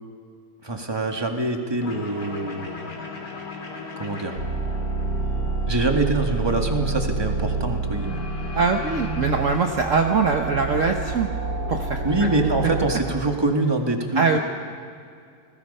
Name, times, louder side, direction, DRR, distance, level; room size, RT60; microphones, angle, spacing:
voice 1, 0.6-2.7 4.0-4.4 5.7-8.2 12.0-14.4, right 2 dB, 15° right, 3 dB, 1.9 m, -24 dB
sound 1, 1.8-10.8, left 5 dB, 85° left, 3.4 m, -38 dB
sound 2, 4.4-12.9, right 3 dB, 90° right, 3.4 m, -28 dB
voice 2, 8.5-11.3 11.7-12.7 14.1-14.4, right 4 dB, 50° right, 4 dB, 1.4 m, -23 dB
30.0 x 20.0 x 5.6 m, 2.3 s
omnidirectional pair, 1.8 m